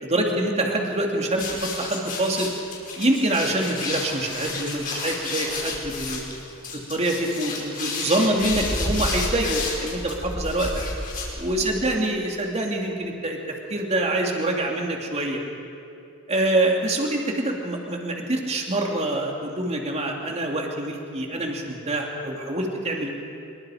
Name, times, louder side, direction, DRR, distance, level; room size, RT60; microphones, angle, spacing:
voice 1, 0.0-2.5 3.0-6.2 6.9-10.7 11.4-13.4 13.7-15.4 16.3-23.2, right 1 dB, 30° right, 1 dB, 2.7 m, -25 dB
sound 1, 1.3-11.8, left 3 dB, 45° left, 5.1 m, -31 dB
25.0 x 22.5 x 5.0 m, 2.7 s
head